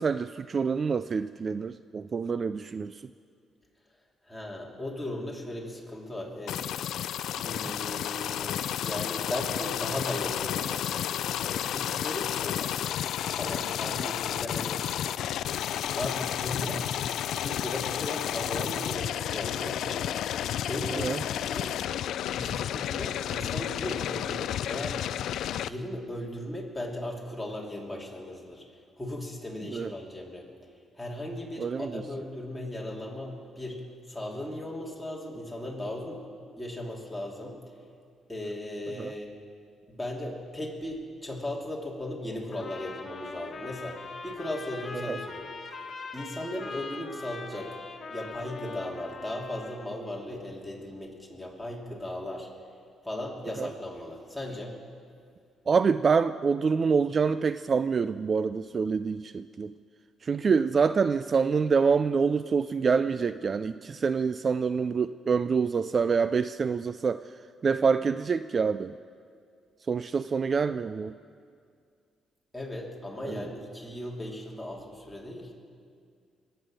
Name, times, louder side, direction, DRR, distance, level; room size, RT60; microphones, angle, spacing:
voice 1, 0.0-3.1 14.0-14.1 20.9-21.2 29.7-29.9 31.6-32.0 39.0-39.1 44.9-45.2 53.6-53.7 55.7-59.7 60.2-68.9 69.9-71.1 73.2-73.5, right 5 dB, 40° right, 13 dB, 0.3 m, -26 dB
voice 2, 4.3-6.6 7.4-8.6 8.8-12.8 13.3-14.8 16.0-16.9 17.4-20.0 20.7-21.7 22.3-25.0 25.5-28.6 29.0-30.5 31.0-33.8 34.1-36.2 36.6-37.6 38.3-39.3 39.9-47.8 48.1-52.5 53.0-54.8 72.5-75.5, left 1 dB, 5° left, -3 dB, 3.0 m, -37 dB
sound 1, 6.5-25.7, left 11 dB, 75° left, 0.4 m, -31 dB
Trumpet, 42.5-49.9, left 4 dB, 40° left, 1.9 m, -41 dB
23.0 x 9.0 x 6.5 m, 2.2 s
cardioid pair, 90°, 0 cm